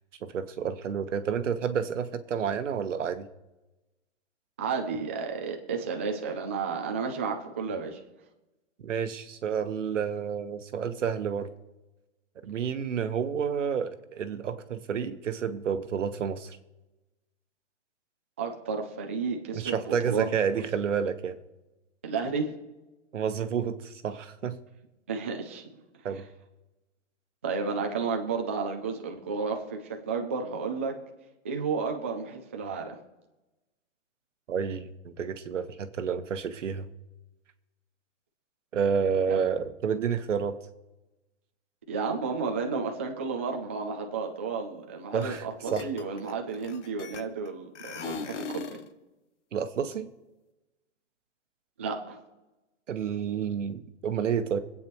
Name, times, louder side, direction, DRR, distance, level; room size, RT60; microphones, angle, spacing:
voice 1, 0.2-3.3 8.8-11.5 12.4-16.6 19.5-21.4 23.1-24.6 26.0-26.2 34.5-36.9 38.7-40.6 45.1-45.5 45.7-45.9 49.5-50.1 52.9-54.6, right 7 dB, 85° right, 10 dB, 1.3 m, -30 dB
voice 2, 4.6-8.0 18.4-20.3 22.0-22.5 25.1-25.6 27.4-31.0 31.4-33.0 39.3-39.4 41.9-45.3 45.6-48.8 51.8-52.2, right 5 dB, 10° right, 2 dB, 0.3 m, -32 dB
sound 1, 45.2-45.4 45.7-47.5 47.8-48.9, left 6 dB, 75° left, 1.4 m, -39 dB
24.5 x 8.6 x 3.0 m, 1.0 s
hypercardioid pair, 155°, 36 cm